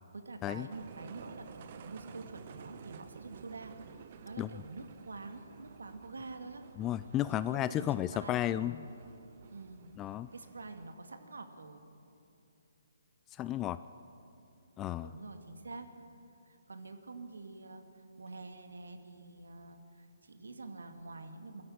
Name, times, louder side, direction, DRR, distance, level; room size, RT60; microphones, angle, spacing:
voice 1, 0.1-3.7 4.2-6.6 7.3-8.4 9.5-9.9 10.3-11.8 15.0-15.9 16.5-17.8 18.2-21.6, right 3 dB, 75° right, 6 dB, 2.2 m, -47 dB
sound 1, 0.7-10.9, right 7 dB, 45° right, 1.3 m, -53 dB
voice 2, 6.8-8.8 10.0-10.3 13.4-13.8 14.8-15.1, left 12 dB, 20° left, 15 dB, 0.4 m, -33 dB
22.5 x 13.5 x 8.9 m, 2.7 s
figure-of-eight pair, 135°, 0 cm